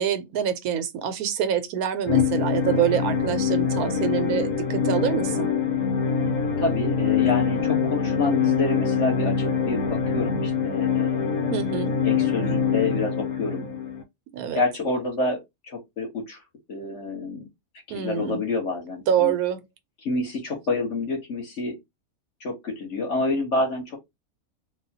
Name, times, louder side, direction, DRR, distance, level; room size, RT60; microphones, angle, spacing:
voice 1, 0.0-5.5 11.5-12.0 14.3-14.6 17.9-18.4 19.1-19.6, right 9 dB, 85° right, 1.1 m, -26 dB
sound 1, 2.1-14.0, left 6 dB, 90° left, 1.3 m, -24 dB
voice 2, 6.6-11.3 12.0-13.7 14.5-15.4 15.6-16.4 16.7-17.4 17.9-19.3 20.0-21.7 22.4-24.0, left 3 dB, 55° left, 1.5 m, -28 dB
3.5 x 2.3 x 2.7 m
omnidirectional pair, 1.5 m